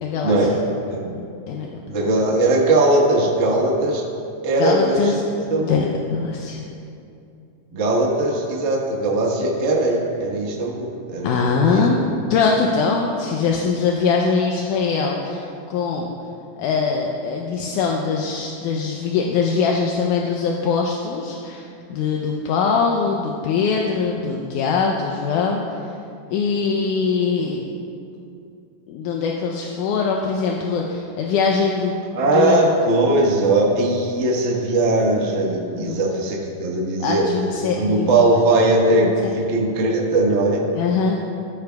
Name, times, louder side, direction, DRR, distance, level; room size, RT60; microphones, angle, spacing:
voice 1, 0.0-0.6 1.5-1.7 4.6-5.2 5.6-5.9 6.1-6.6 11.2-12.0 12.3-16.1 16.6-25.6 26.3-27.6 28.9-31.9 32.3-32.6 35.7-36.0 37.0-38.1 39.0-39.3 40.7-41.2, left 5 dB, 80° left, 0 dB, 2.1 m, -22 dB
voice 2, 0.9-1.2 1.8-4.0 4.4-5.2 5.5-5.9 7.7-11.4 11.7-11.9 32.1-37.3 37.8-39.1 39.3-40.6, right 2 dB, 90° right, -3 dB, 0.6 m, -19 dB
15.0 x 11.5 x 2.3 m, 2.6 s
omnidirectional pair, 3.8 m